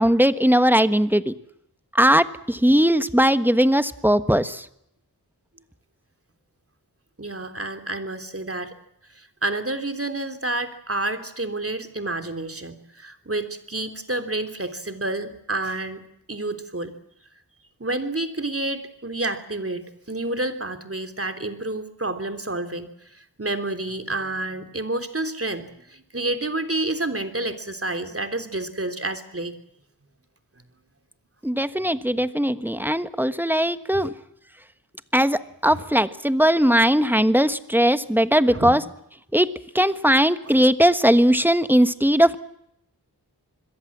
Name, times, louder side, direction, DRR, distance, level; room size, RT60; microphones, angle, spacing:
voice 1, 0.0-1.3 1.9-4.7 31.4-34.1 35.1-38.8 39.3-42.4, equal, 5° right, 12 dB, 1.3 m, -19 dB
voice 2, 7.2-8.7 9.1-16.9 17.8-29.5 35.7-35.8 38.5-38.7, right 2 dB, 35° right, 7 dB, 3.3 m, -29 dB
27.0 x 21.5 x 7.4 m, 0.76 s
wide cardioid pair, 60°, 40 cm